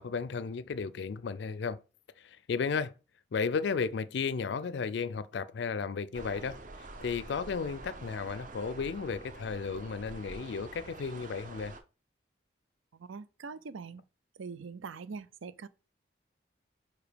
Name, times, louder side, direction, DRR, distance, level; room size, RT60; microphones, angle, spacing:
voice 1, 0.0-1.8 2.2-2.9 3.3-11.7, left 5 dB, 60° left, 0.4 m, -34 dB
sound 1, 6.1-11.8, right 2 dB, 40° right, 0.7 m, -47 dB
voice 2, 13.0-14.0 14.4-15.7, right 5 dB, 90° right, 0.5 m, -43 dB
4.8 x 4.6 x 5.1 m
head